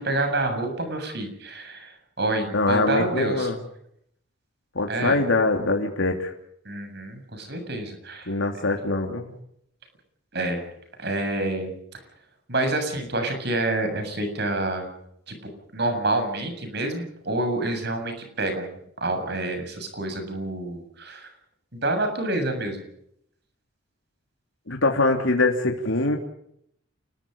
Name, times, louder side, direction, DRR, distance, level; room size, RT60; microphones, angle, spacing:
voice 1, 0.0-1.9 2.2-3.5 4.9-5.2 6.7-8.3 10.3-10.6 11.0-11.7 12.5-15.0 15.3-15.4 15.7-18.7 19.0-21.3 21.8-22.8, right 2 dB, 55° right, 7 dB, 7.4 m, -27 dB
voice 2, 2.5-3.6 4.7-6.3 8.3-9.3 24.7-26.2, left 2 dB, 85° left, 2 dB, 3.0 m, -23 dB
29.0 x 21.0 x 5.3 m, 0.72 s
head